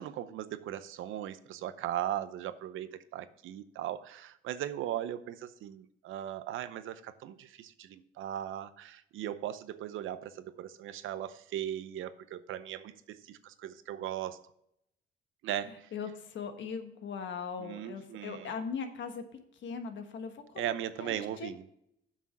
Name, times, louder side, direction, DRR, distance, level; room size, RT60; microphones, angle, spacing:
voice 1, 0.0-14.4 15.4-15.9 17.6-18.5 20.6-21.6, right 11 dB, 85° right, 13 dB, 0.7 m, -38 dB
voice 2, 15.6-20.7 21.0-21.5, left 6 dB, 70° left, 7 dB, 1.4 m, -40 dB
7.6 x 6.2 x 5.9 m, 0.75 s
cardioid pair, 90°, 20 cm